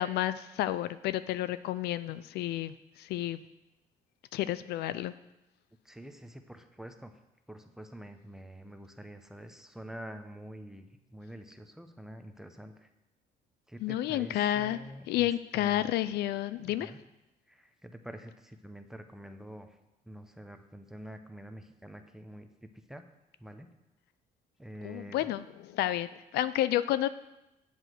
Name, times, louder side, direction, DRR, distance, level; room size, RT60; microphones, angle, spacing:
voice 1, 0.0-3.4 4.3-5.1 13.8-14.8 15.1-16.9 24.8-27.1, left 13 dB, 75° left, 14 dB, 0.4 m, -31 dB
voice 2, 5.8-7.1 7.5-12.9 13.7-15.8 16.6-17.0 17.5-19.8 20.1-23.0 23.4-23.7 24.6-25.3, equal, 5° right, 7 dB, 0.7 m, -47 dB
7.9 x 5.0 x 7.5 m, 0.94 s
cardioid pair, 110°, 17 cm